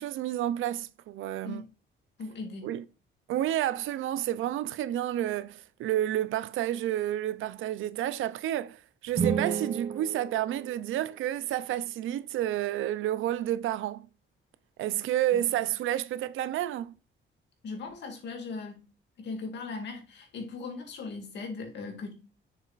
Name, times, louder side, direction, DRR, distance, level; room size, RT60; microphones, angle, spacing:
voice 1, 0.0-1.6 2.6-2.8 3.3-14.1 14.8-16.9, right 12 dB, 80° right, 0.5 m, -30 dB
voice 2, 2.2-2.7 15.3-15.5 17.6-18.8 19.2-22.1, left 4 dB, 60° left, 2.2 m, -38 dB
sound 1, 9.1-11.3, right 6 dB, 35° right, 0.6 m, -33 dB
7.1 x 6.8 x 2.4 m
cardioid pair, 165°, 20 cm